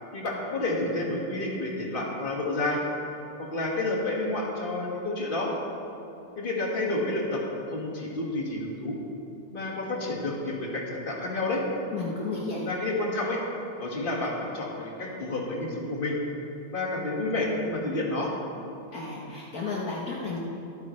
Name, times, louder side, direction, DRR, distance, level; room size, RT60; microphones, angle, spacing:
voice 1, 0.1-2.8 3.5-5.5 6.4-7.4 7.7-9.0 9.5-11.6 12.7-13.4 13.8-16.2 16.7-18.3, left 2 dB, 30° left, -3 dB, 2.0 m, -30 dB
voice 2, 11.9-12.7 18.9-20.4, left 3 dB, 55° left, -4 dB, 1.6 m, -33 dB
24.0 x 9.5 x 3.3 m, 2.8 s
omnidirectional pair, 2.0 m